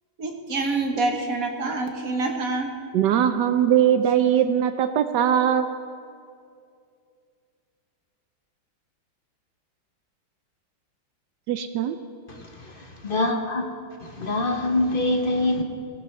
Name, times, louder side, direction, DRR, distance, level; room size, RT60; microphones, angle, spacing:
voice 1, 0.2-2.7 3.2-3.3, right 3 dB, 50° right, 3 dB, 1.2 m, -26 dB
voice 2, 2.9-5.7 11.5-12.0, right 9 dB, 75° right, 9 dB, 1.0 m, -20 dB
voice 3, 13.0-13.6 14.2-15.6, left 2 dB, 40° left, 2 dB, 0.7 m, -23 dB
20.0 x 16.5 x 3.2 m, 2.4 s
omnidirectional pair, 2.3 m